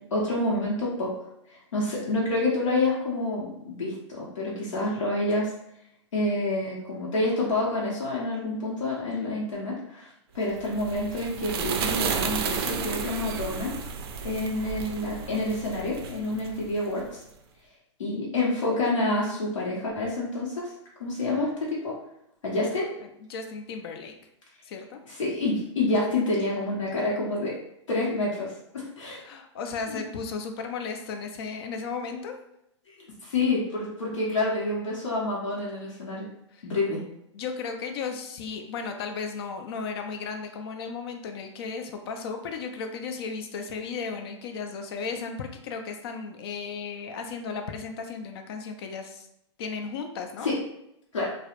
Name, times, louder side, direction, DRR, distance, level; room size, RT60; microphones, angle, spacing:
voice 1, 0.1-1.1 1.5-5.5 6.1-10.1 10.3-13.7 14.2-17.2 18.0-20.7 21.0-21.9 22.4-22.9 25.1-27.5 27.9-29.2 29.9-30.0 33.0-36.3 36.6-37.0 50.4-50.5 51.1-51.3, left 2 dB, 85° left, -5 dB, 0.8 m, -28 dB
sound 1, 10.5-17.1, right 6 dB, 50° right, 0.4 m, -32 dB
voice 2, 23.0-24.1 24.6-25.0 29.2-32.4 36.5-36.7 37.3-49.3 49.6-50.5, left 5 dB, 55° left, 5 dB, 0.4 m, -35 dB
2.3 x 2.0 x 2.9 m, 0.80 s
hypercardioid pair, 120°, 16 cm